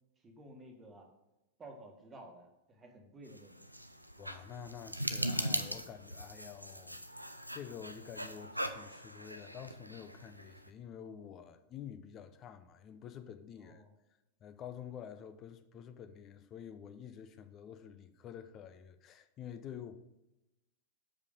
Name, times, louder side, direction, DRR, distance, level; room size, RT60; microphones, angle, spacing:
voice 1, 0.2-1.1 1.6-3.6 13.6-13.9, right 1 dB, 20° right, 1.5 m, -53 dB
sound 1, 3.3-10.7, equal, 90° right, 0.4 m, -40 dB
voice 2, 4.2-7.0 7.5-13.8 14.4-20.0, left 8 dB, 30° left, 0.6 m, -48 dB
6.4 x 5.2 x 5.2 m
figure-of-eight pair, 90°, 0 cm